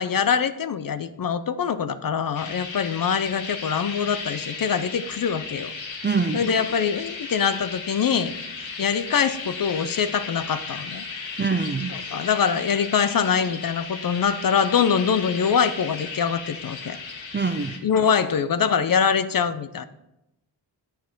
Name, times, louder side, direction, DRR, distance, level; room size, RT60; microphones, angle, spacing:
voice 1, 0.0-5.7 6.3-8.3 8.8-11.0 11.9-17.0 17.8-19.9, left 7 dB, 50° left, 12 dB, 0.5 m, -24 dB
sound 1, 2.3-17.8, left 4 dB, 75° left, 1.2 m, -35 dB
voice 2, 6.0-6.5 11.4-11.9 17.3-17.8, right 4 dB, 25° right, 9 dB, 0.4 m, -24 dB
9.4 x 4.4 x 4.5 m, 0.88 s
wide cardioid pair, 85°, 47 cm